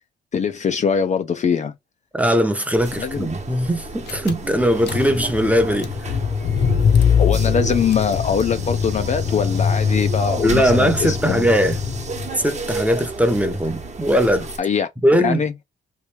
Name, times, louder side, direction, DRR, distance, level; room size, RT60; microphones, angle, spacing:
voice 1, 0.3-1.7 3.0-3.3 7.2-11.5 14.6-14.9 15.2-15.5, left 6 dB, 35° left, 0.5 m, -22 dB
voice 2, 2.1-6.1 10.4-11.8 12.4-14.5 15.0-15.4, equal, 5° right, 0.8 m, -19 dB
sound 1, 2.8-14.6, right 3 dB, 35° right, 1.0 m, -33 dB
Car / Engine, 3.8-3.9 4.1-12.4, left 6 dB, 60° left, 0.8 m, -22 dB
3.1 x 2.6 x 3.3 m
cardioid pair, 90°, 20 cm